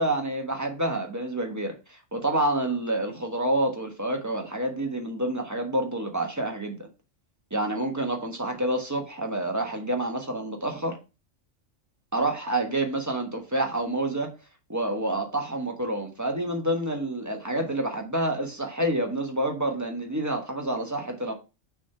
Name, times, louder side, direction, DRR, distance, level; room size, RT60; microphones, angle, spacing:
voice 1, 0.0-6.9 7.5-11.0 12.1-14.3 14.7-21.3, right 1 dB, 15° right, 1.3 m, -28 dB
6.2 x 3.8 x 5.6 m
omnidirectional pair, 1.3 m